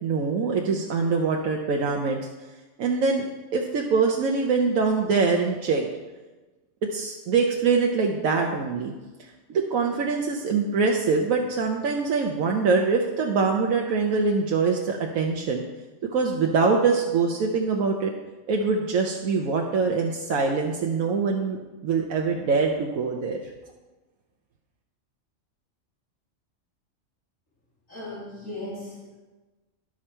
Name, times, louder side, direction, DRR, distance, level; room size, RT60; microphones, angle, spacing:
voice 1, 0.0-2.2 2.8-3.3 3.5-5.9 6.8-8.9 9.5-15.6 16.1-18.1 18.5-21.6 21.8-23.4, right 4 dB, 85° right, 1 dB, 1.2 m, -24 dB
voice 2, 27.9-29.2, left 1 dB, 80° left, -8 dB, 3.2 m, -37 dB
11.5 x 6.2 x 4.4 m, 1.2 s
omnidirectional pair, 1.4 m